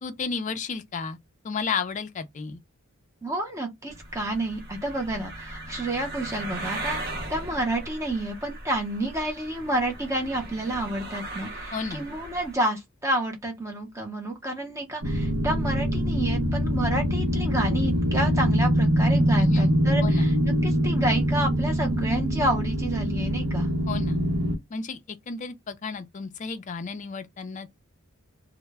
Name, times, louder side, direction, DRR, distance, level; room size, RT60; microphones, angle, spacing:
voice 1, 0.0-1.2 1.4-2.6 11.7-12.0 19.3-19.7 20.0-20.3 23.9-24.2 24.7-27.7, left 5 dB, 35° left, 0.3 m, -32 dB
voice 2, 3.2-7.0 7.3-20.3 20.6-23.7, right 1 dB, 15° right, 0.6 m, -29 dB
sound 1, 3.9-12.5, right 1 dB, 45° right, 0.8 m, -38 dB
sound 2, 15.0-24.6, equal, 85° right, 0.7 m, -24 dB
2.1 x 2.0 x 3.3 m
head